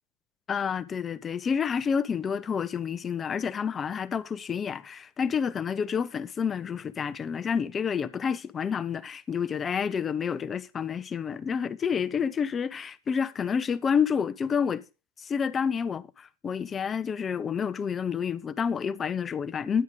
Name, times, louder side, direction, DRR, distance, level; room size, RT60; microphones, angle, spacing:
voice 1, 0.5-14.8 15.2-19.8, left 6 dB, 20° left, 0.5 m, -29 dB
10.5 x 9.4 x 3.8 m
figure-of-eight pair, 90°, 0 cm